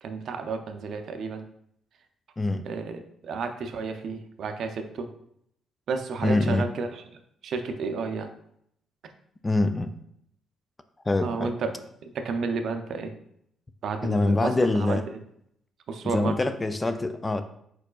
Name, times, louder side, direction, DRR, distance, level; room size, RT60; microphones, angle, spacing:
voice 1, 0.0-1.4 2.6-5.1 5.9-7.0 7.4-8.3 11.2-11.7 12.0-13.1 13.8-14.5 14.8-15.0 15.9-16.4, right 4 dB, 65° right, 7 dB, 0.5 m, -31 dB
voice 2, 2.4-2.7 6.2-6.7 9.4-9.9 11.1-11.5 14.0-15.1 16.1-17.4, left 2 dB, 20° left, 10 dB, 0.3 m, -24 dB
4.7 x 4.7 x 2.3 m, 0.72 s
cardioid pair, 90°, 0 cm